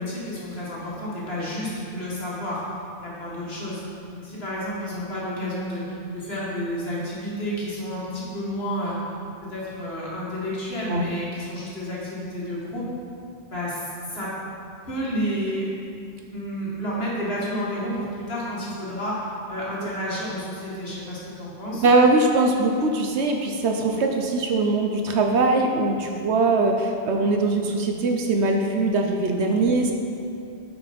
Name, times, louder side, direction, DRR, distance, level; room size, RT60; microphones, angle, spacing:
voice 1, 0.0-2.6 3.0-3.8 4.1-9.0 9.5-12.9 13.5-14.3 14.9-15.7 16.3-21.9, equal, 55° left, -6 dB, 2.1 m, -30 dB
voice 2, 21.8-29.9, right 3 dB, 65° right, 3 dB, 1.0 m, -21 dB
9.0 x 5.1 x 5.1 m, 2.5 s
omnidirectional pair, 1.2 m